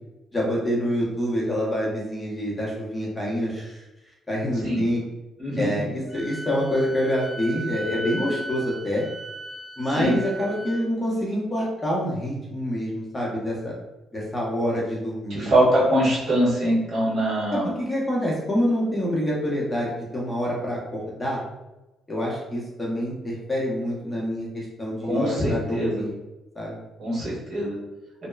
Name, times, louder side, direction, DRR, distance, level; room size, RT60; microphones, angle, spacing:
voice 1, 0.3-3.8 4.3-5.0 5.6-9.0 9.8-13.7 14.1-15.5 17.5-21.4 22.1-26.1 26.5-26.8, equal, 15° left, -5 dB, 0.8 m, -26 dB
voice 2, 5.4-5.9 10.0-10.1 15.3-17.7 25.0-26.0 27.0-27.8, right 1 dB, 50° right, -7 dB, 1.3 m, -23 dB
Wind instrument woodwind instrument, 6.1-10.8, right 1 dB, 15° right, 0.4 m, -36 dB
2.9 x 2.2 x 2.3 m, 1.0 s
cardioid pair, 90°, 0 cm